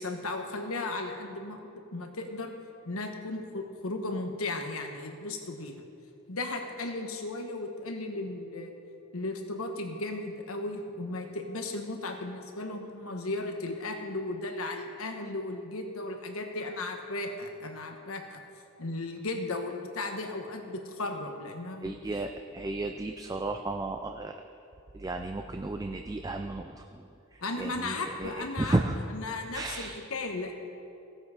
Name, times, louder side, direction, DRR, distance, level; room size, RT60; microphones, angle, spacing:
voice 1, 0.0-1.6 1.9-2.5 2.8-5.8 6.3-8.7 9.1-18.4 18.8-22.2 27.4-28.8 29.1-30.5, left 2 dB, 75° left, 4 dB, 1.3 m, -35 dB
voice 2, 21.8-24.4 24.9-26.8 27.6-27.9 28.2-29.0 29.5-29.9, right 2 dB, 15° right, 5 dB, 0.3 m, -33 dB
16.5 x 8.0 x 4.9 m, 2.6 s
head